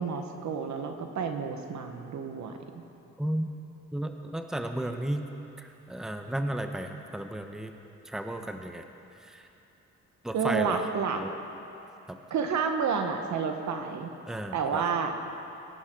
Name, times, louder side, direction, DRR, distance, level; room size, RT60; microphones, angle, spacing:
voice 1, 0.0-2.8 10.3-11.2 12.3-14.1 14.5-15.1, right 6 dB, 70° right, 5 dB, 1.4 m, -30 dB
voice 2, 3.2-3.5 3.9-5.3 5.6-7.7 8.0-8.8 9.2-9.5 10.2-10.8 11.2-11.3 12.1-12.2 14.3-14.8, right 1 dB, ahead, 5 dB, 0.9 m, -33 dB
22.5 x 11.0 x 3.8 m, 2.9 s
cardioid pair, 90°, 30 cm